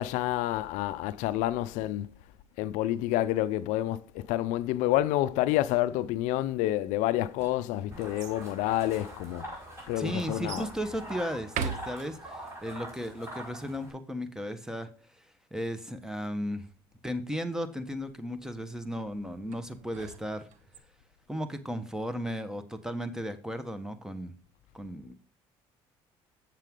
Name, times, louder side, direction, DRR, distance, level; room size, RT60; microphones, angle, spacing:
voice 1, 0.0-2.1 2.6-9.5 9.9-10.7, left 14 dB, 80° left, 0.4 m, -28 dB
sound 1, 7.1-8.4 9.2-9.3 10.5-10.8 11.4-12.5 19.5-20.8, right 7 dB, 75° right, 0.9 m, -39 dB
sound 2, 7.9-13.9, equal, 25° right, 5.0 m, -44 dB
voice 2, 10.0-14.9 15.5-16.6 17.0-20.5 21.3-24.3 24.7-25.1, equal, 5° right, 1.2 m, -35 dB
7.4 x 7.4 x 3.7 m
supercardioid pair, 75°, 13 cm